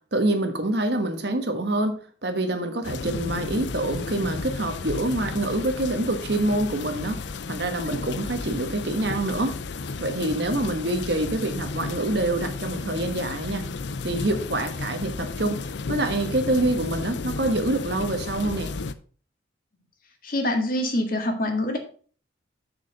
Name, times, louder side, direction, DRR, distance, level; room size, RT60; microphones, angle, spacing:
voice 1, 0.1-7.2 7.5-9.6 10.0-13.7 14.0-15.6 15.9-18.7, right 1 dB, 55° right, 7 dB, 1.3 m, -26 dB
sound 1, 2.8-18.9, left 4 dB, 60° left, 0.5 m, -33 dB
voice 2, 20.2-21.8, left 1 dB, 45° left, 4 dB, 1.7 m, -25 dB
6.6 x 6.6 x 5.3 m, 0.42 s
head